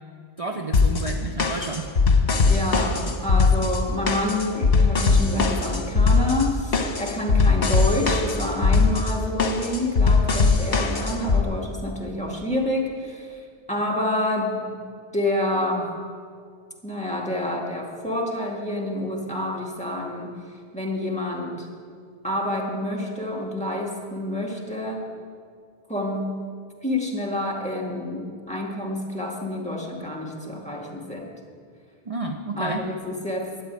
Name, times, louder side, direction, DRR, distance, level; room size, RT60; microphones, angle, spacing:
voice 1, 0.4-1.9 32.1-32.8, right 3 dB, 35° right, 3 dB, 0.8 m, -30 dB
sound 1, 0.7-11.4, left 4 dB, 70° left, 1.3 m, -20 dB
voice 2, 2.4-14.8 15.1-16.0 16.8-20.4 20.7-21.7 22.2-25.1 25.9-26.3 26.8-31.3 32.6-33.5, left 1 dB, 5° left, -3 dB, 2.1 m, -28 dB
13.0 x 7.6 x 9.6 m, 2.2 s
omnidirectional pair, 1.0 m